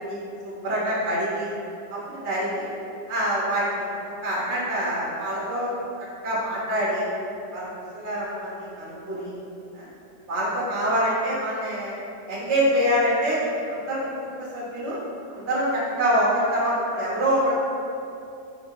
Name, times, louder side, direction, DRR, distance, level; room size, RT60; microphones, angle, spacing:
voice 1, 0.1-1.5 1.9-2.7 3.1-5.7 6.2-7.0 7.5-7.7 7.9-9.3 9.7-9.9 10.3-12.0 12.3-15.0 15.3-17.5, equal, 45° right, -7 dB, 1.4 m, -25 dB
4.3 x 4.2 x 5.3 m, 2.6 s
omnidirectional pair, 1.8 m